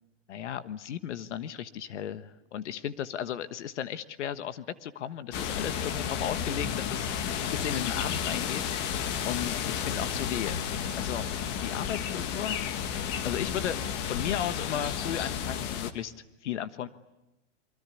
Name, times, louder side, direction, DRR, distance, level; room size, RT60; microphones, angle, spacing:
voice 1, 0.3-8.9 9.3-10.5 11.0-11.3 11.6-12.6 13.2-13.8 14.1-16.1 16.4-16.9, left 10 dB, 75° left, 12 dB, 1.5 m, -35 dB
sound 1, 5.3-15.9, left 8 dB, 30° left, 1.4 m, -32 dB
29.0 x 24.0 x 8.5 m, 0.94 s
supercardioid pair, 160°, 36 cm